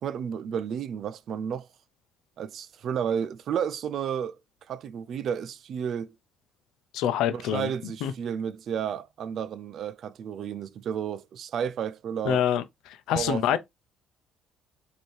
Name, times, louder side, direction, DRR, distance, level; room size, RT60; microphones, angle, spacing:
voice 1, 0.0-1.7 2.4-4.4 4.7-6.1 7.3-12.4 13.1-13.6, right 8 dB, 55° right, 0.4 m, -32 dB
voice 2, 6.9-7.7 8.0-8.1 12.2-13.6, left 10 dB, 80° left, 0.6 m, -26 dB
4.3 x 2.9 x 3.2 m
cardioid pair, 120°, 0 cm